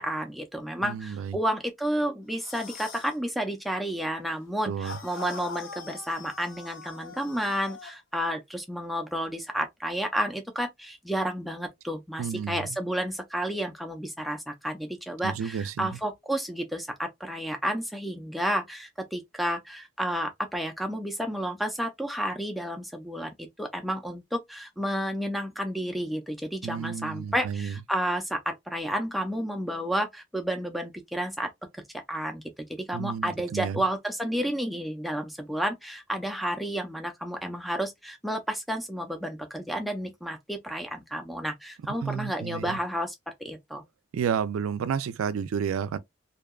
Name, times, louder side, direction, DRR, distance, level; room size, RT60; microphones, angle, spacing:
voice 1, 0.0-31.5 32.1-32.4 32.7-43.1 43.4-43.8, equal, ahead, 0.4 m, -31 dB
voice 2, 0.8-1.4 4.7-5.0 12.2-12.7 15.2-15.9 26.6-27.8 32.9-33.8 42.0-42.8 44.1-46.0, right 7 dB, 85° right, 0.3 m, -31 dB
sound 1, 2.3-3.2 4.8-8.0, left 5 dB, 70° left, 0.6 m, -42 dB
2.7 x 2.2 x 2.2 m
head